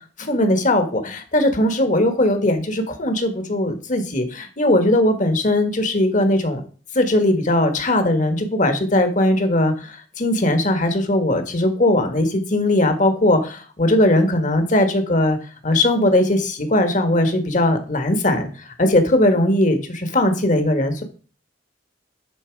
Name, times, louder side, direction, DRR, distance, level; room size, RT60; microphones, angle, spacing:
voice 1, 0.3-6.6 6.9-15.4 15.6-18.5 18.8-21.0, left 1 dB, 45° left, 8 dB, 1.5 m, -19 dB
10.0 x 4.3 x 4.6 m, 0.37 s
head